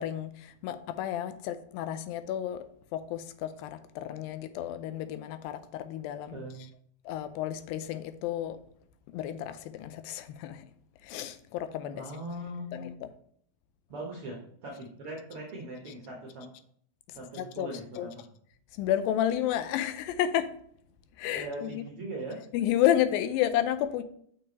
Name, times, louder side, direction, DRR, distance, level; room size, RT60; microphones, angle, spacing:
voice 1, 0.0-2.7 2.9-6.4 7.1-8.6 9.1-10.7 11.0-12.0 12.7-13.1 17.4-17.7 18.0-18.1 18.7-20.5 21.2-21.8 22.5-24.0, left 11 dB, 85° left, 2.4 m, -31 dB
voice 2, 6.3-6.6 11.9-12.8 13.9-16.5 17.1-18.2 21.3-22.4, right 1 dB, 65° right, 1.4 m, -40 dB
6.7 x 5.6 x 4.1 m
omnidirectional pair, 4.1 m